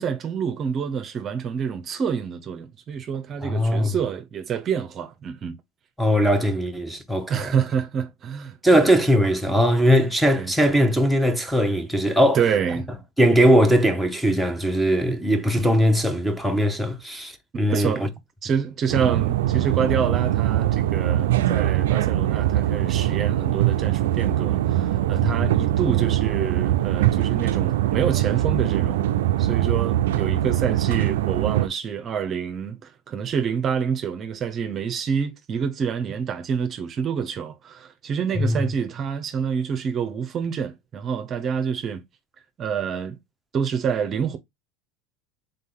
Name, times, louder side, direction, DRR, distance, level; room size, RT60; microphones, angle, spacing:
voice 1, 0.0-5.6 7.3-8.9 9.5-9.6 10.4-10.5 12.3-12.9 15.1-15.2 17.7-18.1 18.4-29.1 29.4-42.0 42.6-43.2 43.5-44.4, right 7 dB, 40° right, 0.6 m, -27 dB
voice 2, 3.4-3.9 6.0-7.5 8.6-12.4 13.2-17.9 25.2-25.3 38.4-38.6, equal, ahead, 0.8 m, -20 dB
sound 1, 18.9-31.7, right 13 dB, 85° right, 0.3 m, -22 dB
3.8 x 2.7 x 3.8 m
supercardioid pair, 105°, 0 cm